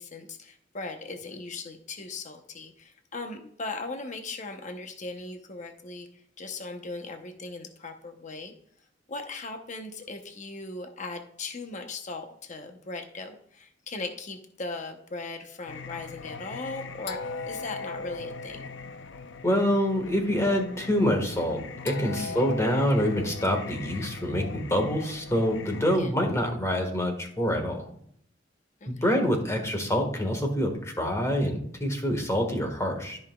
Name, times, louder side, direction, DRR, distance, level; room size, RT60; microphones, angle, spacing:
voice 1, 0.0-6.1 6.4-8.5 9.1-18.6 22.2-22.5 25.9-26.1 28.8-29.2, left 3 dB, 45° left, 5 dB, 0.9 m, -38 dB
Singing, 15.7-26.0, left 4 dB, 80° left, 0.6 m, -39 dB
voice 2, 19.4-27.8 28.8-33.2, equal, 15° left, 3 dB, 1.6 m, -26 dB
13.5 x 5.7 x 2.3 m, 0.66 s
head